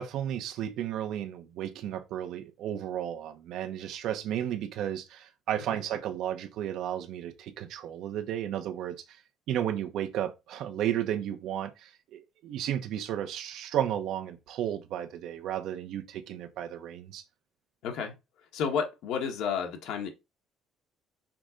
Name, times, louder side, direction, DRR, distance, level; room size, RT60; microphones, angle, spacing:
voice 1, 0.0-9.0 9.5-17.2, right 10 dB, 70° right, 1.1 m, -33 dB
voice 2, 17.8-18.2 18.5-20.1, left 6 dB, 75° left, 1.7 m, -31 dB
6.0 x 3.8 x 5.1 m
cardioid pair, 160°, 0 cm